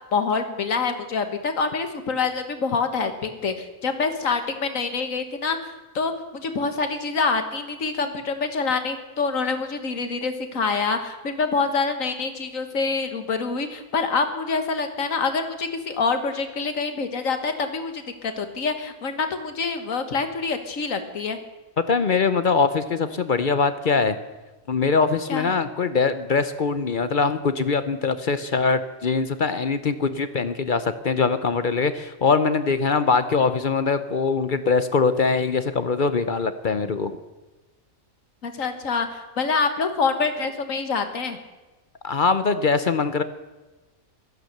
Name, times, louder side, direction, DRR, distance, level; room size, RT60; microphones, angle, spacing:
voice 1, 0.1-5.6 6.0-21.4 25.3-25.5 38.4-41.4, left 4 dB, 75° left, 8 dB, 1.8 m, -26 dB
voice 2, 21.9-24.2 24.7-37.2 42.0-43.2, left 4 dB, 45° left, 11 dB, 0.7 m, -22 dB
15.5 x 13.5 x 6.6 m, 1.1 s
omnidirectional pair, 1.4 m